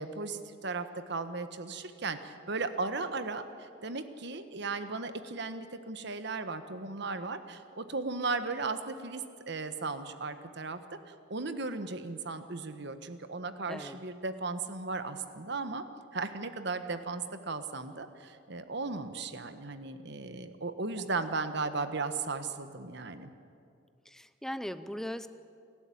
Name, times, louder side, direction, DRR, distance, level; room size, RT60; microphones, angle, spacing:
voice 1, 0.0-15.8 16.1-23.3, right 3 dB, 65° right, 9 dB, 1.3 m, -36 dB
voice 2, 13.7-14.0 21.0-21.1 24.0-25.3, equal, 5° left, 12 dB, 0.7 m, -39 dB
28.5 x 12.0 x 8.6 m, 2.5 s
head